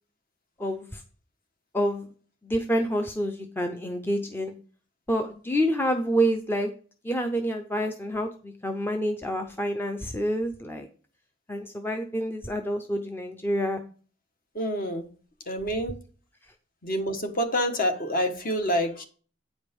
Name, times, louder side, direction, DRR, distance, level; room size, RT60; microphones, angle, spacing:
voice 1, 0.6-1.0 1.7-2.1 2.4-4.5 5.1-6.7 7.0-10.9 11.5-13.8, equal, 10° left, 5 dB, 0.6 m, -28 dB
voice 2, 14.5-15.1 15.5-15.9 16.8-19.0, equal, 45° left, 5 dB, 1.4 m, -27 dB
9.0 x 5.1 x 5.2 m, 0.39 s
head